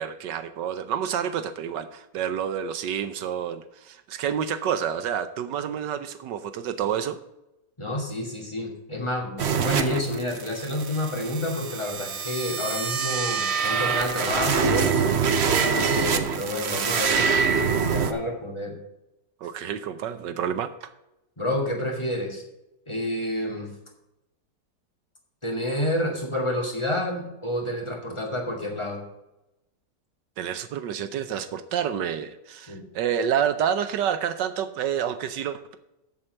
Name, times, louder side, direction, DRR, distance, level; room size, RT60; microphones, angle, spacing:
voice 1, 0.0-7.2 19.4-20.9 30.4-35.8, right 8 dB, 80° right, 11 dB, 1.4 m, -29 dB
voice 2, 7.8-15.1 15.5-17.3 17.5-18.8 21.4-22.4 22.9-23.7 25.4-29.0 32.7-32.8, left 1 dB, 15° left, 0 dB, 2.3 m, -29 dB
sound 1, 9.4-18.1, right 6 dB, 50° right, 0.8 m, -25 dB
7.8 x 7.3 x 6.4 m, 0.91 s
omnidirectional pair, 1.9 m